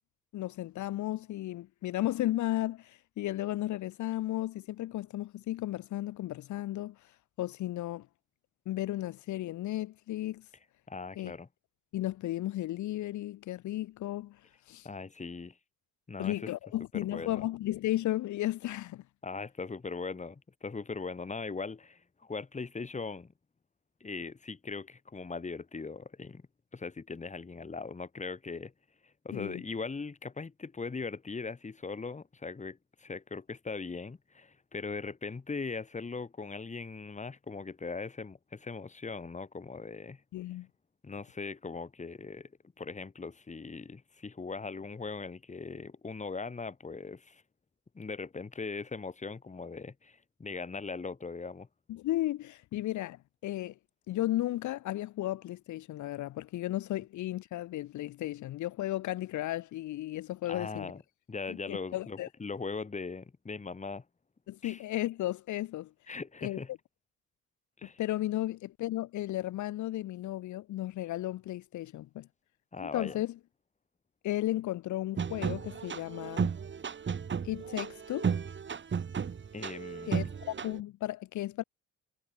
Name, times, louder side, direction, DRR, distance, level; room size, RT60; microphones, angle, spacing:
voice 1, 0.3-8.1 8.7-10.5 11.2-11.3 11.9-14.4 14.7-14.9 16.2-19.0 29.3-29.6 40.3-40.7 51.9-53.7 54.1-60.9 61.5-62.3 64.5-65.9 66.4-66.6 67.8-72.3 72.8-73.4 74.2-76.5 77.4-78.3 80.1-81.6, left 15 dB, 70° left, 0.8 m, -34 dB
voice 2, 10.9-11.5 14.8-15.6 16.1-16.5 16.9-17.5 19.2-23.3 24.0-26.4 26.7-28.7 29.2-40.2 41.0-42.5 42.8-47.4 47.9-51.7 60.5-61.0 61.3-64.0 64.6-64.8 66.1-66.7 67.8-68.0 72.7-73.2 79.5-80.3, left 4 dB, 25° left, 1.9 m, -40 dB
sound 1, 75.2-80.8, right 6 dB, 40° right, 2.0 m, -34 dB
cardioid pair, 90°, 30 cm